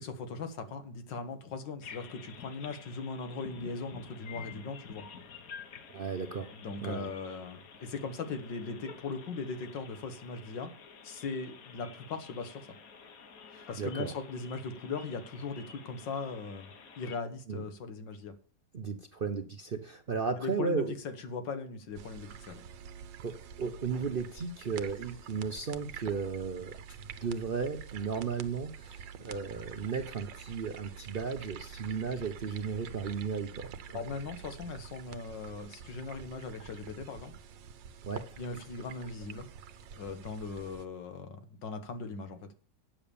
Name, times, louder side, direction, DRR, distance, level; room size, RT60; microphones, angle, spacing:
voice 1, 0.0-5.0 6.5-10.7 11.0-12.7 13.7-16.7 17.0-18.3 20.4-22.6 33.9-37.3 38.4-39.5 40.0-42.5, left 4 dB, 90° left, 8 dB, 2.1 m, -39 dB
sound 1, 1.8-17.1, left 6 dB, 55° left, 1.5 m, -50 dB
voice 2, 5.9-6.5 6.8-7.1 13.5-14.1 17.5-17.6 18.7-20.9 23.2-34.0 38.1-38.2, right 5 dB, 50° right, 6 dB, 0.6 m, -35 dB
sound 2, 21.9-40.9, right 7 dB, 90° right, 1.5 m, -47 dB
8.7 x 7.1 x 6.8 m, 0.42 s
omnidirectional pair, 1.9 m